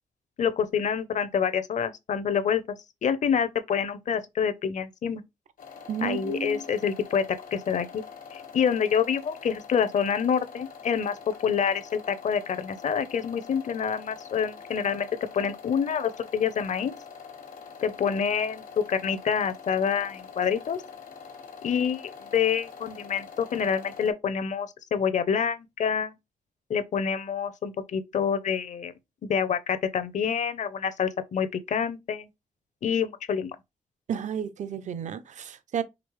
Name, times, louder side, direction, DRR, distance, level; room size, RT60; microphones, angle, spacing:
voice 1, 0.4-2.6 3.0-5.2 6.0-7.2 7.5-8.0 8.3-15.1 15.3-16.9 17.8-20.8 21.6-26.1 26.7-28.9 29.2-32.3 32.8-33.6, left 7 dB, 60° left, 0.6 m, -27 dB
sound 1, 5.6-24.1, left 6 dB, 85° left, 1.3 m, -45 dB
voice 2, 5.9-6.6 34.1-35.8, right 8 dB, 60° right, 0.5 m, -32 dB
5.1 x 3.1 x 3.1 m
wide cardioid pair, 135°, 14 cm